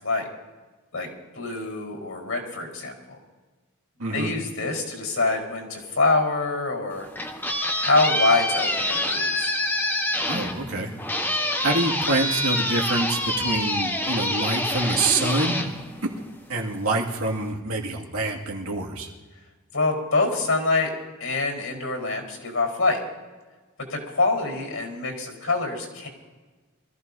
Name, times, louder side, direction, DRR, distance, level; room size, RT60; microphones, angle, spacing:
voice 1, 1.4-3.2 4.1-7.1 7.8-9.5 19.7-20.9 21.2-23.0 23.9-26.1, left 3 dB, 75° left, 1 dB, 4.5 m, -25 dB
voice 2, 4.0-4.3 10.3-10.9 11.6-15.7 16.5-19.1, right 2 dB, 80° right, -1 dB, 2.3 m, -26 dB
sound 1, 6.9-16.6, left 1 dB, 10° left, 1.3 m, -26 dB
24.5 x 15.0 x 2.8 m, 1.3 s
head